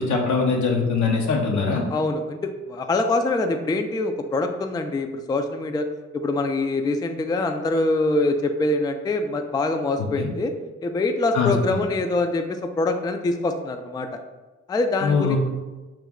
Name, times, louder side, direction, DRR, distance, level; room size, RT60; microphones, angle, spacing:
voice 1, 0.0-1.8 10.2-10.3 11.3-11.5 15.0-15.4, left 5 dB, 75° left, 0 dB, 0.8 m, -22 dB
voice 2, 1.9-5.9 6.1-10.5 10.8-14.1 14.7-15.4, left 2 dB, 15° left, 6 dB, 0.3 m, -24 dB
3.2 x 3.0 x 3.6 m, 1.2 s
supercardioid pair, 50°, 30 cm